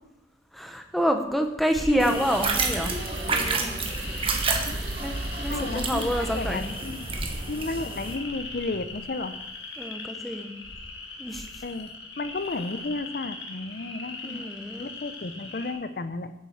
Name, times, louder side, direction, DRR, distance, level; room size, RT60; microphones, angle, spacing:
voice 1, 0.5-3.0 3.3-3.8 5.0-6.6 7.2-7.3 9.8-10.5 11.2-11.6 14.2-14.9, equal, ahead, 4 dB, 0.9 m, -28 dB
sound 1, 1.7-15.7, left 4 dB, 70° left, 2.2 m, -40 dB
sound 2, 2.0-8.1, right 4 dB, 30° right, 1.2 m, -30 dB
sound 3, 2.2-9.4, right 1 dB, 65° right, 1.3 m, -37 dB
voice 2, 5.4-7.1 7.5-9.4 11.6-14.5 14.8-16.3, left 3 dB, 55° left, 11 dB, 0.6 m, -33 dB
9.3 x 7.4 x 7.2 m, 1.0 s
head